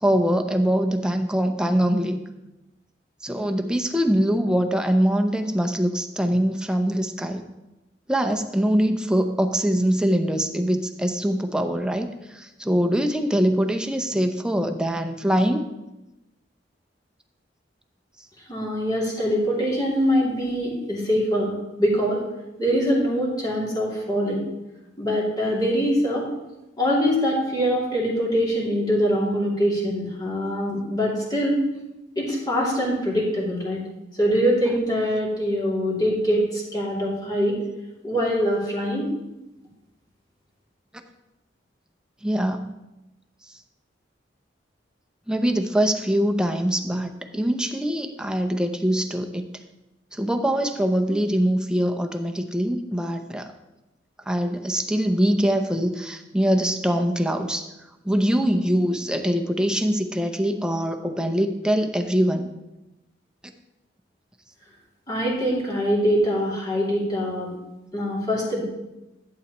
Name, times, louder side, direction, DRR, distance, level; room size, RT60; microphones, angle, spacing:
voice 1, 0.0-2.2 3.2-7.4 8.1-12.1 12.3-15.6 42.2-42.7 45.3-49.5 50.1-53.5 54.3-57.6 58.0-62.5, equal, 5° right, 5 dB, 0.6 m, -23 dB
voice 2, 18.5-21.5 21.8-22.2 22.6-24.4 25.0-26.3 26.8-31.6 32.2-33.8 34.2-37.6 38.0-39.1 65.1-67.5 67.9-68.6, equal, 25° left, -5 dB, 2.6 m, -23 dB
11.5 x 8.4 x 3.0 m, 0.97 s
head